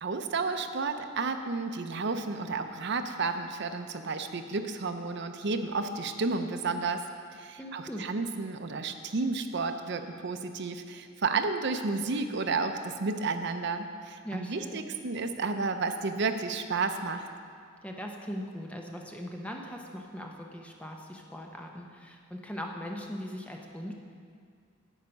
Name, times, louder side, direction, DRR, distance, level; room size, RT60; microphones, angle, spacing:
voice 1, 0.0-7.1 7.3-17.3, right 4 dB, 60° right, 7 dB, 0.6 m, -32 dB
voice 2, 7.6-8.1 14.2-14.9 17.8-23.9, equal, 5° left, 1 dB, 0.8 m, -40 dB
10.0 x 8.3 x 5.3 m, 2.2 s
head